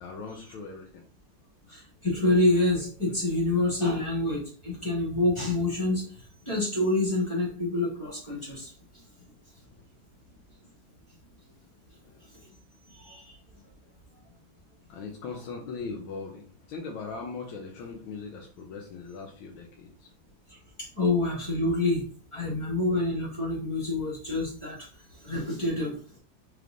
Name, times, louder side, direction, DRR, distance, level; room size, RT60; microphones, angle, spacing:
voice 1, 0.0-1.0 12.0-12.1 14.9-20.1, left 4 dB, 85° left, 0 dB, 1.6 m, -39 dB
voice 2, 1.7-8.7 12.9-13.4 20.5-22.0 22.3-26.0, left 2 dB, 15° left, -6 dB, 1.6 m, -27 dB
4.7 x 3.3 x 2.5 m, 0.43 s
omnidirectional pair, 2.2 m